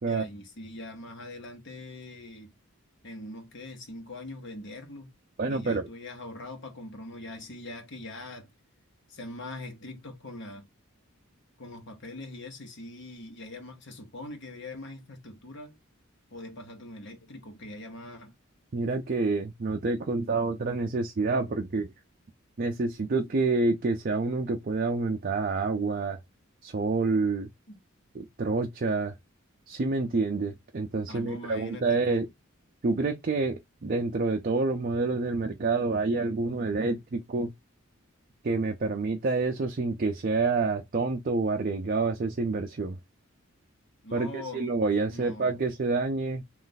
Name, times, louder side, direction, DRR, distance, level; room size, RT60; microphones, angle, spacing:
voice 1, 0.1-2.5 3.0-5.1 5.5-8.5 9.1-10.7 11.6-15.8 16.3-18.3 27.7-27.8 31.1-32.2 44.0-44.7 45.1-45.6, left 2 dB, 60° left, 1.1 m, -42 dB
voice 2, 5.4-5.9 18.7-21.9 22.6-26.2 26.6-27.5 28.1-29.1 29.7-32.3 32.8-37.5 38.4-43.0 44.1-46.4, right 3 dB, 45° right, 0.5 m, -28 dB
3.2 x 2.5 x 3.9 m
head